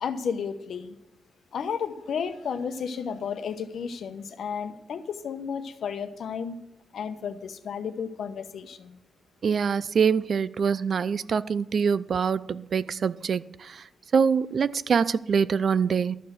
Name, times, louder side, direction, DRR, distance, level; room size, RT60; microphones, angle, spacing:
voice 1, 0.0-0.9 1.5-6.6 6.9-9.0, left 6 dB, 70° left, 0.9 m, -33 dB
voice 2, 9.4-13.8 14.1-16.2, right 6 dB, 50° right, 0.4 m, -24 dB
12.0 x 6.5 x 7.6 m
wide cardioid pair, 130°, 0 cm